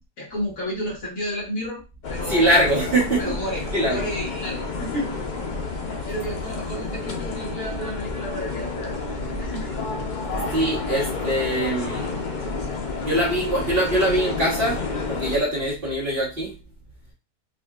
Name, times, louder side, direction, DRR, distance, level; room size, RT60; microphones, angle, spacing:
voice 1, 0.2-1.8 2.1-2.5 3.2-5.1 5.9-9.0 9.4-9.8 10.3-10.6, equal, 55° left, 1.9 m, -32 dB
sound 1, 2.0-15.4, left 3 dB, 85° left, 0.4 m, -30 dB
voice 2, 2.3-3.4 3.7-4.1 10.5-12.1 13.0-14.8 15.1-16.5, right 1 dB, 40° right, 1.4 m, -22 dB
4.7 x 2.6 x 2.3 m
omnidirectional pair, 1.8 m